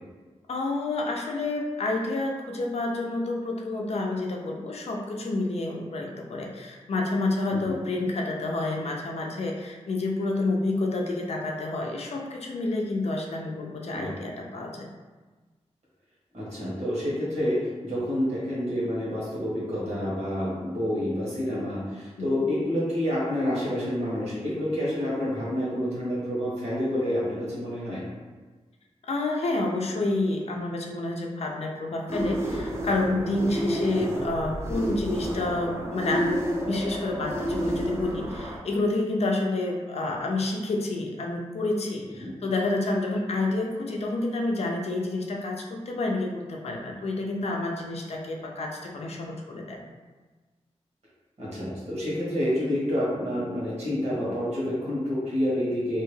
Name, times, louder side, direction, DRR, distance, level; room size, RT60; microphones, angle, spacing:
voice 1, 0.5-14.9 22.2-22.4 29.1-49.8, left 2 dB, 65° left, 0 dB, 0.4 m, -29 dB
voice 2, 16.3-28.0 42.2-42.3 51.4-56.0, left 1 dB, 80° right, -8 dB, 1.3 m, -28 dB
sound 1, 32.1-38.6, equal, 25° right, 0.4 m, -30 dB
2.8 x 2.3 x 3.1 m, 1.3 s
wide cardioid pair, 140°, 11 cm